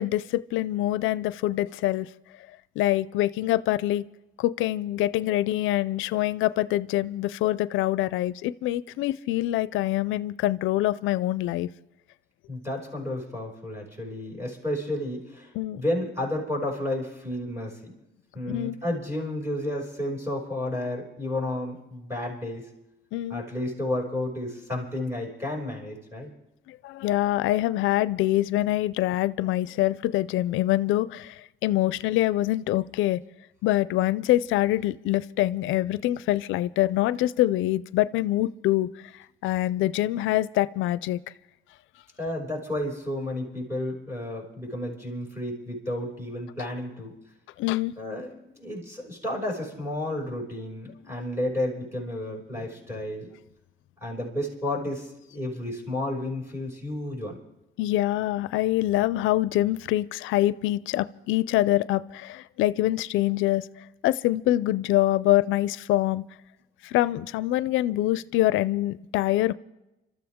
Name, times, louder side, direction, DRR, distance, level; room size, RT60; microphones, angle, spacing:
voice 1, 0.0-2.1 2.8-4.1 4.4-11.7 15.6-15.8 18.4-18.8 23.1-23.4 26.7-33.2 33.6-38.9 39.4-41.2 47.6-47.9 57.8-63.7 64.0-66.2 66.8-69.5, left 15 dB, 90° left, 18 dB, 0.4 m, -25 dB
voice 2, 12.5-17.9 18.3-22.7 23.3-26.3 42.2-47.1 48.0-53.3 54.0-57.4, left 1 dB, 15° right, -2 dB, 6.1 m, -32 dB
26.0 x 13.5 x 3.6 m, 0.93 s
cardioid pair, 90°, 20 cm